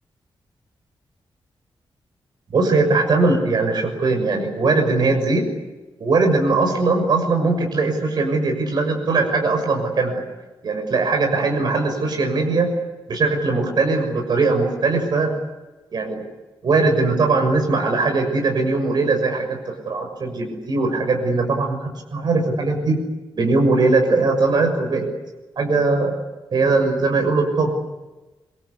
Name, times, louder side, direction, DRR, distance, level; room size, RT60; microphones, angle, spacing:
voice 1, 2.5-5.4 6.0-10.2 10.6-12.7 13.1-15.3 15.9-16.2 16.6-23.0 23.4-25.1 25.6-26.1 26.5-27.7, right 3 dB, 55° right, 3 dB, 6.7 m, -20 dB
27.5 x 23.5 x 8.4 m, 1.1 s
wide cardioid pair, 180°, 9 cm